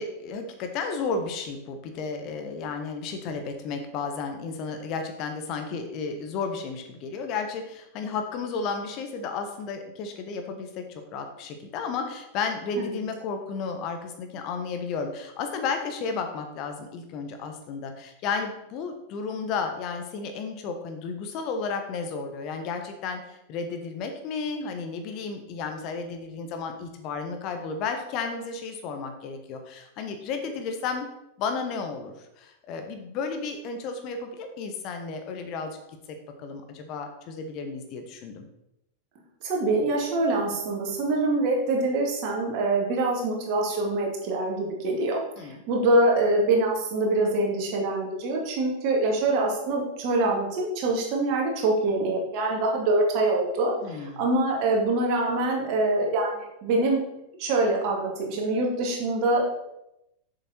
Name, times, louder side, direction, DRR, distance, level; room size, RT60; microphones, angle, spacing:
voice 1, 0.0-31.1 31.4-35.8 36.1-38.4 45.4-45.6 53.8-54.3, left 5 dB, 40° left, 6 dB, 1.2 m, -33 dB
voice 2, 39.4-57.0 57.4-59.4, right 2 dB, 45° right, 0 dB, 2.5 m, -25 dB
7.2 x 7.2 x 4.3 m, 0.85 s
figure-of-eight pair, 90°, 0 cm